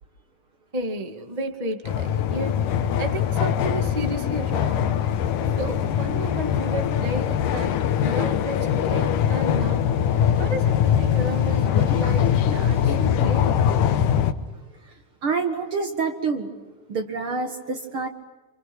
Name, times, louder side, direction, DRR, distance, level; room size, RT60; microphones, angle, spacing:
voice 1, 0.7-2.6 3.0-5.1 5.6-7.8 8.0-9.9 10.4-13.6, right 1 dB, 15° right, 4 dB, 1.7 m, -32 dB
sound 1, 1.8-14.3, left 9 dB, 90° left, 2.7 m, -22 dB
voice 2, 11.3-13.0 14.8-18.1, right 4 dB, 50° right, 5 dB, 2.2 m, -30 dB
27.5 x 27.0 x 6.3 m, 1.2 s
omnidirectional pair, 3.5 m